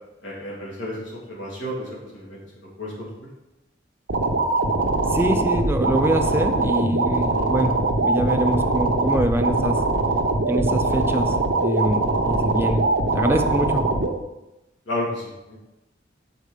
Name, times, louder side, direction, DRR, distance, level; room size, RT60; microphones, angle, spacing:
voice 1, 0.2-3.3 14.9-15.6, left 1 dB, 85° left, -5 dB, 2.5 m, -32 dB
sound 1, 4.1-14.1, right 2 dB, 80° right, 0.9 m, -22 dB
voice 2, 5.1-7.7 8.0-9.8 10.5-12.9 13.1-13.9, right 1 dB, 15° right, 6 dB, 0.5 m, -24 dB
6.6 x 4.3 x 4.9 m, 0.98 s
head